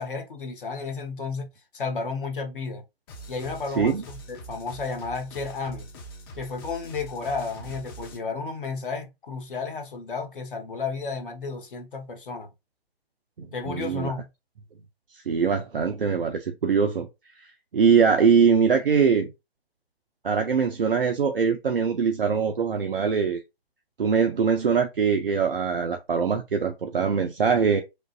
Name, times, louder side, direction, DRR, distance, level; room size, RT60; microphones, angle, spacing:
voice 1, 0.0-1.5 1.7-2.8 3.3-5.9 6.3-12.5 13.5-14.3, left 4 dB, 55° left, 1.3 m, -32 dB
sound 1, 3.1-8.2, right 2 dB, 25° left, 0.9 m, -43 dB
voice 2, 13.4-14.1 15.1-17.1 17.4-17.5 17.7-19.3 20.2-23.4 24.0-27.8, right 6 dB, 60° right, 0.7 m, -22 dB
6.5 x 2.6 x 2.5 m
figure-of-eight pair, 130°, 31 cm